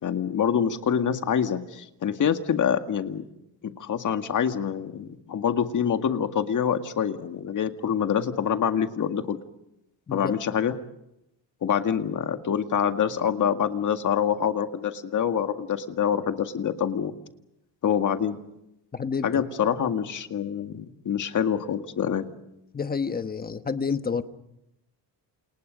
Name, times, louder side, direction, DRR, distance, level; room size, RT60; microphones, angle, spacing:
voice 1, 0.0-3.2 3.6-9.4 10.1-10.7 11.6-17.1 17.8-18.4 19.2-22.3, left 8 dB, 45° left, 7 dB, 1.9 m, -26 dB
voice 2, 18.9-19.4 22.7-24.2, left 5 dB, 20° left, 10 dB, 1.2 m, -29 dB
29.0 x 28.5 x 5.2 m, 0.85 s
cardioid pair, 155°, 44 cm